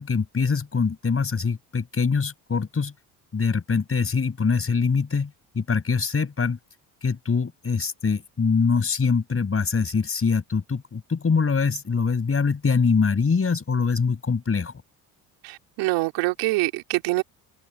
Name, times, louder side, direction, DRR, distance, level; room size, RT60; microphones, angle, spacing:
voice 1, 0.0-2.9 3.3-6.6 7.0-14.7, left 5 dB, 30° left, 5.8 m, -23 dB
voice 2, 15.4-17.2, right 21 dB, 80° right, 3.4 m, -25 dB
supercardioid pair, 75°, 43 cm